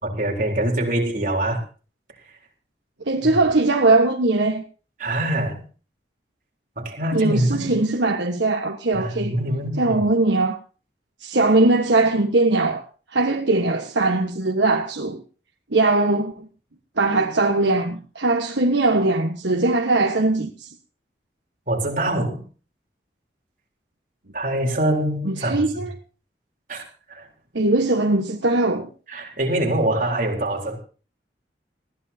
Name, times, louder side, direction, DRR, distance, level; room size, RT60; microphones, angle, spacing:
voice 1, 0.0-1.6 3.2-3.3 5.0-5.6 6.8-7.8 8.9-10.0 21.7-22.4 24.3-25.6 26.7-26.8 27.1-27.3 29.1-30.8, right 1 dB, 45° right, 3.8 m, -24 dB
voice 2, 3.0-4.6 7.1-9.4 9.8-10.6 11.2-12.8 13.1-15.2 15.7-16.5 17.0-20.7 25.2-25.9 27.5-28.9, right 2 dB, 85° right, 1.4 m, -20 dB
20.0 x 15.0 x 2.8 m
head